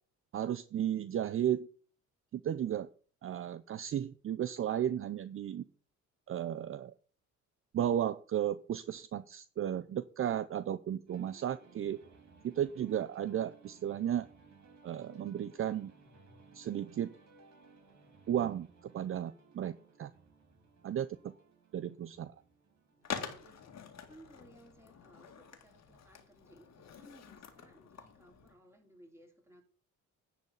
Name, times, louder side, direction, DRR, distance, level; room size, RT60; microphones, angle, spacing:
voice 1, 0.3-1.7 2.3-2.9 3.2-5.6 6.3-6.9 7.7-12.0 12.4-14.3 14.8-15.9 16.5-17.1 18.3-19.7 20.0-20.1 20.8-21.3 21.7-22.3, right 10 dB, 45° right, 0.6 m, -34 dB
sound 1, 11.1-24.8, right 4 dB, 60° right, 3.1 m, -61 dB
voice 2, 22.9-29.6, right 1 dB, 10° right, 3.2 m, -60 dB
Skateboard, 23.0-28.6, left 7 dB, 60° left, 1.9 m, -46 dB
10.5 x 4.1 x 7.3 m
cardioid pair, 90°, 30 cm